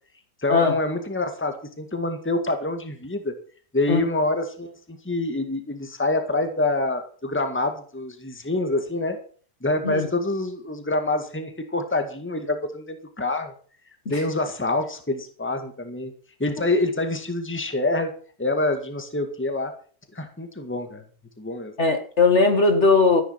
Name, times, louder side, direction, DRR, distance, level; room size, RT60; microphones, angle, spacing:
voice 1, 0.4-3.3 3.7-9.2 9.6-13.5 14.1-16.1 16.4-18.1 18.4-19.7 20.1-21.0 21.4-21.8, left 2 dB, 10° left, 1.8 m, -26 dB
voice 2, 21.8-23.2, left 4 dB, 50° left, 2.0 m, -18 dB
14.0 x 10.0 x 5.9 m
omnidirectional pair, 1.6 m